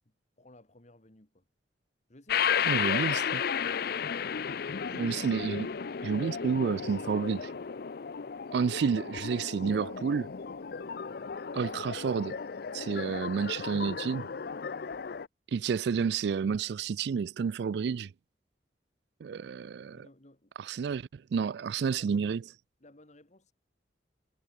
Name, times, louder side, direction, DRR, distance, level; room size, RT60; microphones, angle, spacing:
voice 1, 0.4-1.4 2.1-4.2 11.0-11.4 15.6-15.7 19.9-20.5 21.8-22.3 22.8-23.5, left 1 dB, 40° left, 2.5 m, -58 dB
sound 1, 2.3-15.3, left 7 dB, 60° left, 0.6 m, -34 dB
voice 2, 2.7-3.4 4.9-5.7 6.0-7.5 8.5-10.3 11.5-12.4 12.7-14.2 15.5-18.1 19.2-20.1 20.6-22.4, right 6 dB, 65° right, 0.3 m, -30 dB
head